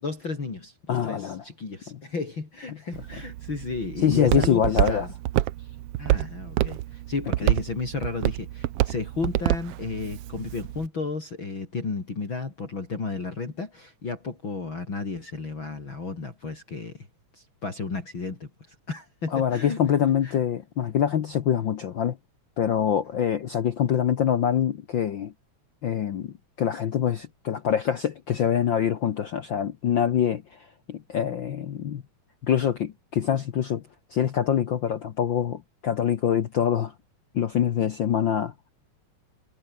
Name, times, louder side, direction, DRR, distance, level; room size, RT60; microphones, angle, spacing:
voice 1, 0.0-5.1 6.0-17.1 17.3-19.8 20.2-20.4, left 4 dB, 35° left, 4.7 m, -33 dB
voice 2, 0.9-1.4 4.0-5.0 19.3-22.2 22.6-25.3 25.8-30.4 30.9-32.0 32.4-33.8 34.1-36.9 37.3-38.5, left 9 dB, 75° left, 1.1 m, -25 dB
Walk footsteps, 2.9-10.9, right 15 dB, 80° right, 1.3 m, -28 dB
omnidirectional pair, 3.7 m